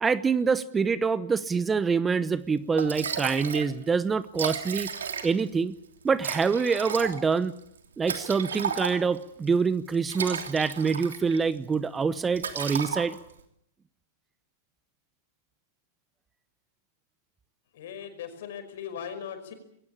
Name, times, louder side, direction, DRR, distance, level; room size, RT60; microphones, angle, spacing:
voice 1, 0.0-4.9 5.2-5.7 6.0-7.5 8.0-13.2, right 5 dB, 15° right, 15 dB, 0.9 m, -26 dB
Liquid, 2.4-2.5 2.8-3.7 4.0-4.1 4.3-5.5 6.2-9.2 9.9-11.4 11.7-12.0 12.3-13.4, right 6 dB, 85° right, 3.1 m, -33 dB
voice 2, 17.7-19.5, left 8 dB, 70° left, 8 dB, 5.3 m, -38 dB
22.0 x 17.5 x 8.8 m, 0.73 s
hypercardioid pair, 120°, 0 cm